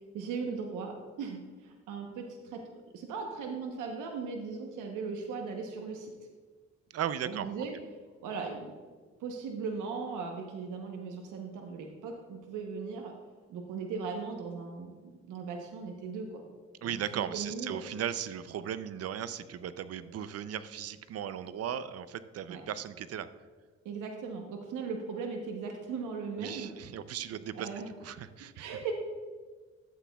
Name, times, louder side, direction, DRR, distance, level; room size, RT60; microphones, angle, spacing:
voice 1, 0.0-6.1 7.2-7.7 8.2-8.8 9.2-13.1 13.5-14.9 15.3-16.4 16.8-17.8 22.5-22.6 23.8-26.7 27.5-27.9 28.5-28.9, right 5 dB, 85° right, 2 dB, 1.0 m, -38 dB
voice 2, 6.9-7.5 16.8-23.3 26.4-27.7 28.0-28.7, right 9 dB, 55° right, 14 dB, 0.5 m, -37 dB
11.5 x 8.4 x 2.3 m, 1.5 s
cardioid pair, 90°, 30 cm